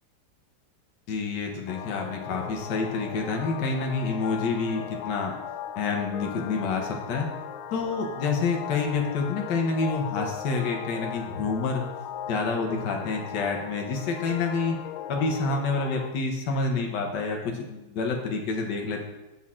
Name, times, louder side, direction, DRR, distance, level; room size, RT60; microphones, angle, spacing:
voice 1, 1.1-5.3 5.8-7.3 7.7-11.8 12.3-14.8 15.1-19.0, left 4 dB, 65° left, 2 dB, 1.6 m, -28 dB
sound 1, 1.7-16.1, left 9 dB, 90° left, 1.4 m, -38 dB
7.2 x 6.3 x 3.7 m, 1.0 s
omnidirectional pair, 2.2 m